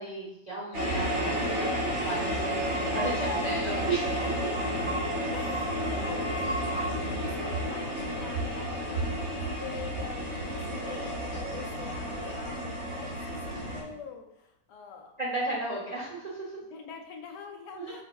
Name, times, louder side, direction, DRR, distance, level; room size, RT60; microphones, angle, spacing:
voice 1, 0.0-4.5 15.2-16.5 17.7-18.0, right 2 dB, 60° right, -6 dB, 0.4 m, -34 dB
sound 1, 0.7-13.8, right 1 dB, 45° right, 1.4 m, -31 dB
voice 2, 3.7-4.3 4.6-15.2 16.7-18.0, left 6 dB, 75° left, 2 dB, 1.2 m, -44 dB
Water, 5.4-13.9, left 2 dB, 40° left, 1.6 m, -50 dB
4.5 x 3.5 x 2.3 m, 0.84 s
omnidirectional pair, 1.8 m